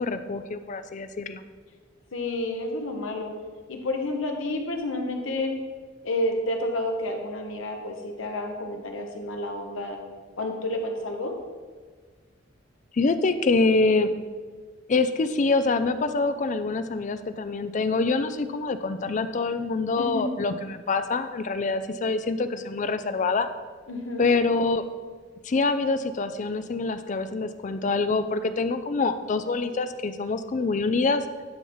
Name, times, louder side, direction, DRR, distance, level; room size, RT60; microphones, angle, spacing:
voice 1, 0.0-1.4 12.9-14.1 14.9-23.5 24.2-24.8 25.4-31.2, left 3 dB, 35° left, 10 dB, 0.4 m, -25 dB
voice 2, 2.1-3.3 3.7-5.5 6.0-10.0 10.4-11.3 20.0-20.3 23.9-24.2, left 1 dB, 75° left, 3 dB, 1.0 m, -30 dB
10.5 x 5.6 x 3.1 m, 1.5 s
head